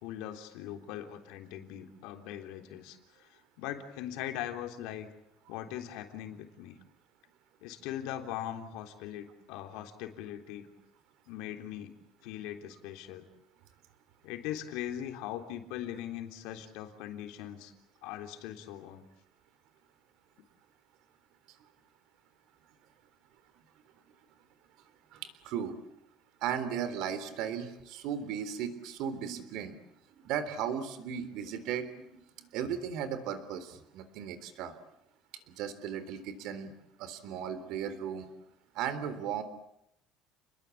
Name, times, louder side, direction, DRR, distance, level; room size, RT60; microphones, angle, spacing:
voice 1, 0.0-5.1 5.5-6.8 7.6-10.7 11.3-11.9 12.2-13.3 14.2-17.7 18.0-19.0, left 11 dB, 75° left, 6 dB, 3.5 m, -40 dB
voice 2, 25.1-25.8 26.4-29.8 30.2-34.7 35.6-36.7 37.0-38.3 38.8-39.4, right 8 dB, 65° right, 12 dB, 3.6 m, -36 dB
30.0 x 21.5 x 8.6 m, 0.79 s
cardioid pair, 160°, 0 cm